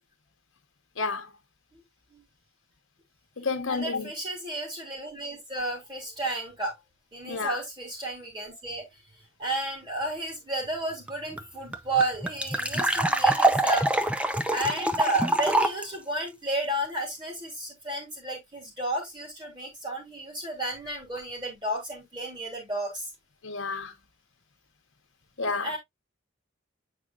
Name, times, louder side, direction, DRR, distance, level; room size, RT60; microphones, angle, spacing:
voice 1, 1.0-1.3 3.4-4.1 7.3-7.6 12.7-12.9 23.4-23.9 25.4-25.7, left 4 dB, 80° left, 1.1 m, -30 dB
voice 2, 3.7-6.8 7.1-8.8 9.4-13.9 14.5-23.0 25.6-25.8, right 2 dB, 20° right, 3.5 m, -32 dB
sound 1, 11.1-11.2 11.4-11.5 11.7-15.8, right 2 dB, 5° right, 0.5 m, -24 dB
8.7 x 4.9 x 2.4 m
head